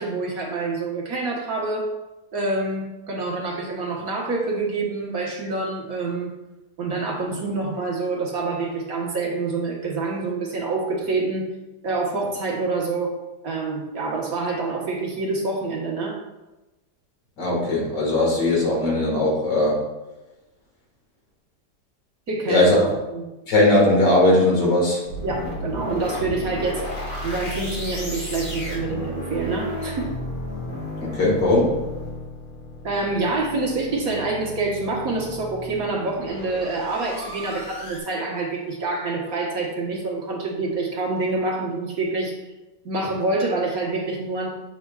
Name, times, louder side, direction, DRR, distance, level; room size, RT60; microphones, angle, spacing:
voice 1, 0.0-1.9 2.3-6.3 6.8-11.5 11.8-13.2 13.4-16.2 22.3-22.8 23.1-23.3 25.2-26.8 27.2-30.1 32.8-42.3 42.8-44.5, right 3 dB, 60° right, -2 dB, 1.6 m, -26 dB
voice 2, 17.4-19.8 22.5-22.8 23.5-25.0 31.0-31.8, left 1 dB, 85° left, -2 dB, 2.3 m, -19 dB
sound 1, 25.1-38.0, left 1 dB, 50° left, 1.8 m, -33 dB
8.4 x 5.7 x 2.3 m, 1.1 s
omnidirectional pair, 1.8 m